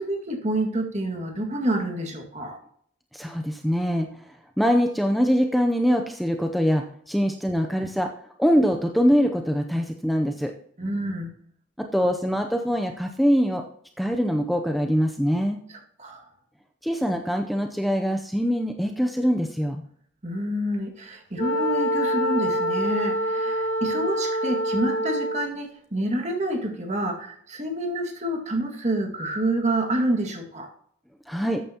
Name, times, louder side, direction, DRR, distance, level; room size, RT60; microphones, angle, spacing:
voice 1, 0.0-2.6 10.8-11.3 15.7-16.3 20.2-30.7, right 1 dB, 40° right, 2 dB, 2.0 m, -28 dB
voice 2, 3.1-4.1 4.6-8.1 8.4-10.5 11.8-13.6 14.0-15.6 16.8-19.8 31.3-31.6, equal, ahead, 4 dB, 0.6 m, -23 dB
Wind instrument woodwind instrument, 21.4-25.5, equal, 80° left, 2.0 m, -25 dB
13.5 x 9.2 x 2.9 m, 0.63 s
head